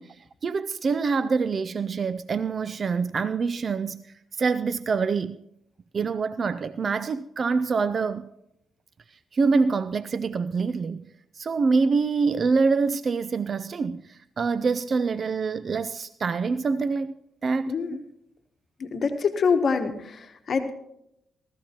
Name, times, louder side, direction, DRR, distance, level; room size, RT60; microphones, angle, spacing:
voice 1, 0.0-5.4 5.9-8.3 9.1-11.1 11.3-17.1 17.4-18.0, right 4 dB, 50° right, 0.4 m, -26 dB
voice 2, 17.7-18.0 18.8-20.7, left 5 dB, 55° left, 1.1 m, -25 dB
16.5 x 13.5 x 2.9 m
supercardioid pair, 60°, 0 cm